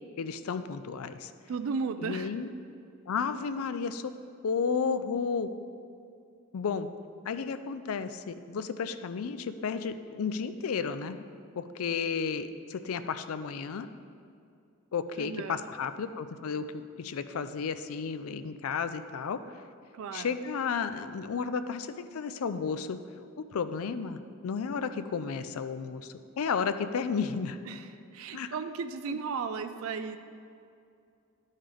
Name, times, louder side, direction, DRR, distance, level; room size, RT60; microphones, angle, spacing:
voice 1, 0.2-1.3 2.0-2.5 3.1-4.1 4.4-5.5 6.5-6.9 7.2-11.2 11.6-13.9 14.9-19.4 20.1-23.0 23.5-27.6 28.3-28.5 29.1-29.2, left 5 dB, 80° left, 11 dB, 0.4 m, -33 dB
voice 2, 1.5-2.3 15.2-15.6 19.9-20.3 27.7-27.9 28.1-30.2, right 5 dB, 70° right, 9 dB, 0.3 m, -35 dB
12.0 x 5.5 x 3.5 m, 2.5 s
head